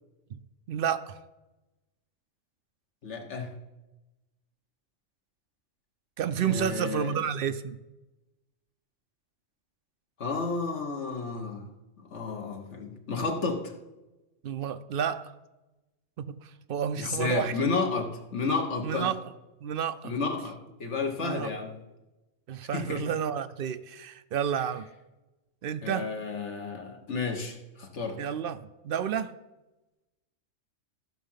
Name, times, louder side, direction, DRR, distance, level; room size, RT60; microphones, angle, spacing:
voice 1, 0.7-1.2 6.2-7.8 14.4-15.3 16.2-17.6 18.8-19.2 19.6-20.1 21.2-21.5 22.5-24.9 25.6-26.1 28.2-29.3, right 8 dB, 60° right, 13 dB, 0.6 m, -30 dB
voice 2, 3.0-3.5 6.4-7.2 10.2-11.7 12.1-13.7 17.0-19.1 20.0-21.7 22.7-23.0 25.8-28.2, left 4 dB, 65° left, 3 dB, 1.6 m, -31 dB
14.5 x 6.1 x 5.7 m, 1.0 s
omnidirectional pair, 1.3 m